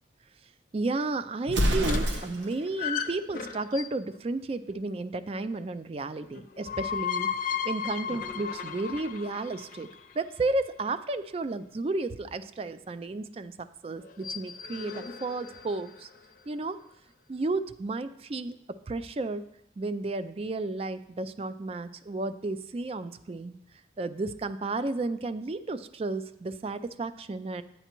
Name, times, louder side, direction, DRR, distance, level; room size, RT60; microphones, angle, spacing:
voice 1, 0.7-9.9 10.1-16.1 16.5-16.8 17.3-19.4 19.8-23.5 24.0-27.6, right 2 dB, 30° right, 12 dB, 0.3 m, -33 dB
Explosion, 1.5-2.6, equal, 80° right, 0.8 m, -26 dB
sound 1, 1.8-4.1 6.3-10.4 14.0-16.2, left 7 dB, 45° left, 0.6 m, -35 dB
9.2 x 9.0 x 3.0 m, 0.78 s
head